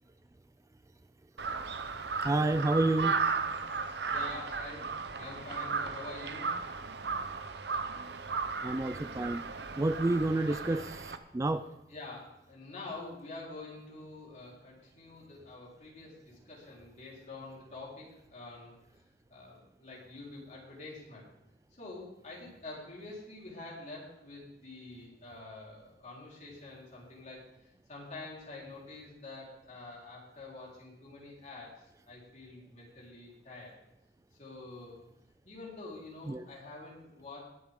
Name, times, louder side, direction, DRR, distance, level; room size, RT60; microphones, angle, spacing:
Crow, 1.4-11.2, right 4 dB, 65° right, 0.8 m, -35 dB
voice 1, 2.2-3.1 8.6-9.4 9.8-11.6 36.3-36.4, right 2 dB, 20° right, 11 dB, 0.3 m, -29 dB
voice 2, 3.8-6.5 10.5-10.6 11.9-18.8 19.3-21.3 21.8-33.7 34.4-35.0 35.4-37.5, left 2 dB, 45° left, -5 dB, 4.2 m, -47 dB
20.0 x 7.6 x 3.7 m, 0.89 s
head